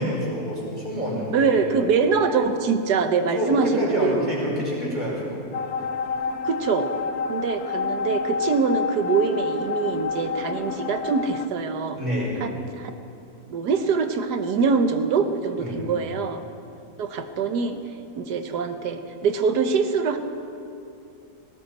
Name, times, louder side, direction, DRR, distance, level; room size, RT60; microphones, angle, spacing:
voice 1, 0.0-1.6 3.3-5.4 11.9-12.4 15.6-15.9, equal, 25° right, -6 dB, 5.3 m, -27 dB
voice 2, 1.3-4.3 6.4-6.9 7.3-12.0 12.4-12.9 13.5-16.4 17.0-17.8 18.2-20.2, right 5 dB, 85° right, 8 dB, 1.6 m, -24 dB
sound 1, 5.5-11.5, left 5 dB, 70° left, 1.1 m, -29 dB
19.0 x 17.5 x 4.2 m, 2.6 s
omnidirectional pair, 1.7 m